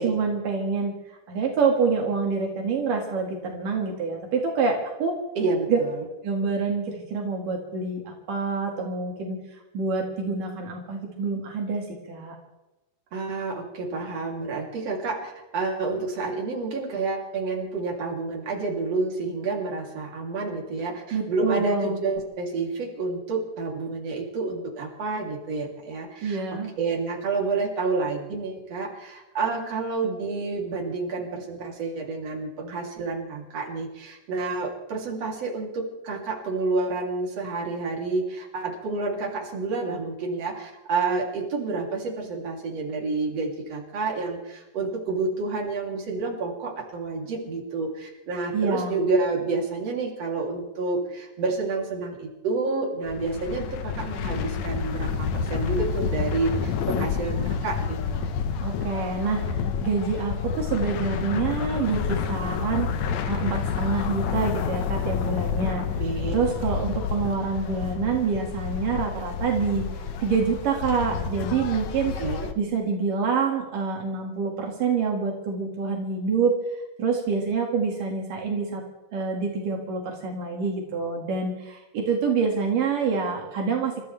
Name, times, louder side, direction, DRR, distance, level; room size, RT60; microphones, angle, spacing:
voice 1, 0.0-5.2 5.7-5.8 6.2-9.4 9.7-12.4 21.1-22.0 26.2-26.7 48.5-48.9 58.6-62.9 63.3-65.8 66.3-69.9 70.2-72.2 72.6-76.6 77.0-78.8 79.1-83.9, right 5 dB, 80° right, 1 dB, 3.7 m, -26 dB
voice 2, 5.4-6.0 13.1-58.3 66.0-66.4 72.2-72.5, right 3 dB, 50° right, -1 dB, 4.2 m, -29 dB
sound 1, 53.1-72.5, left 6 dB, 65° left, 2.2 m, -29 dB
29.5 x 14.0 x 3.5 m, 0.99 s
omnidirectional pair, 3.7 m